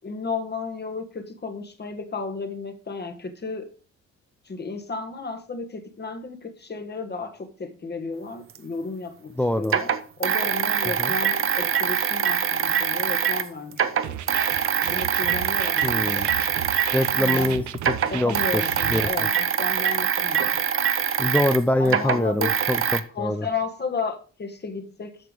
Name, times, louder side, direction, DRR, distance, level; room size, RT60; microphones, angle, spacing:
voice 1, 0.0-3.7 4.4-9.3 9.6-14.2 14.8-16.5 17.1-17.6 18.1-19.3 19.6-20.6 21.8-22.5 23.1-25.2, left 4 dB, 35° left, 7 dB, 1.5 m, -33 dB
sound 1, 8.5-8.6 9.6-13.5 13.7-17.5 17.8-23.0, right 8 dB, 45° right, 0.9 m, -24 dB
voice 2, 9.4-9.8 11.0-11.1 15.8-16.3 16.9-18.6 18.9-19.1 21.2-23.5, left 1 dB, 5° left, 9 dB, 0.5 m, -24 dB
sound 2, 14.0-19.1, right 12 dB, 70° right, 0.7 m, -35 dB
7.9 x 5.8 x 5.1 m, 0.39 s
cardioid pair, 90°, 30 cm